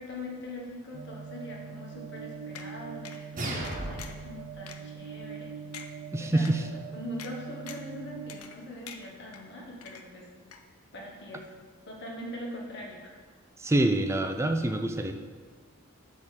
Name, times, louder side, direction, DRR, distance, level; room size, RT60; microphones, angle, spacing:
voice 1, 0.0-5.6 6.2-10.3 10.9-11.5 11.9-13.2, left 1 dB, 55° left, -1 dB, 1.2 m, -42 dB
sound 1, 0.9-8.4, right 7 dB, 85° right, 0.6 m, -43 dB
sound 2, 2.5-2.7 3.0-3.2 3.6-4.2 4.7-4.8 5.3-5.4 5.7-5.9 6.4-6.5 7.2-7.3 7.7-7.9 8.3-8.6 8.9-9.4 9.8-10.3 10.5-10.6, left 8 dB, 85° left, 0.6 m, -44 dB
sound 3, 3.4-4.4, right 1 dB, 40° right, 1.2 m, -34 dB
voice 2, 6.1-6.6 13.6-15.1, right 1 dB, 15° right, 6 dB, 0.4 m, -26 dB
8.2 x 3.7 x 6.4 m, 1.5 s
head